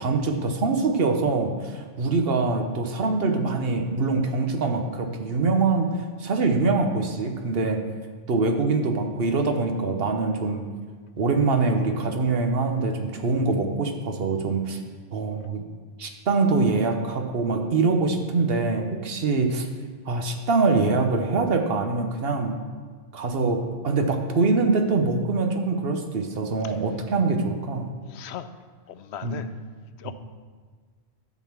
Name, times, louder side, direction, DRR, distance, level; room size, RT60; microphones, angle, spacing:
voice 1, 0.0-7.8 8.3-10.7 11.2-14.8 15.1-15.6 16.0-19.7 20.0-22.6 23.1-27.9 29.2-29.4 30.0-30.1, right 3 dB, 65° right, 5 dB, 1.1 m, -24 dB
voice 2, 28.0-28.5 28.9-29.5 30.0-30.1, left 9 dB, 90° left, 11 dB, 0.9 m, -38 dB
11.0 x 4.1 x 7.3 m, 1.5 s
omnidirectional pair, 1.1 m